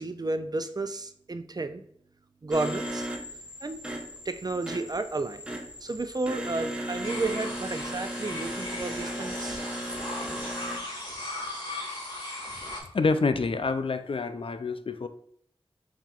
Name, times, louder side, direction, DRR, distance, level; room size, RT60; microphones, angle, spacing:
voice 1, 0.0-1.8 2.4-3.1 3.6-3.8 4.2-5.4 5.8-9.6, right 3 dB, 40° right, 9 dB, 0.4 m, -32 dB
sound 1, 2.5-10.8, right 1 dB, 10° right, 0.8 m, -36 dB
sound 2, 7.0-12.8, left 1 dB, 45° left, 1.8 m, -37 dB
voice 2, 12.9-15.1, left 4 dB, 60° left, 10 dB, 0.4 m, -27 dB
7.2 x 2.8 x 2.4 m, 0.67 s
wide cardioid pair, 50°, 10 cm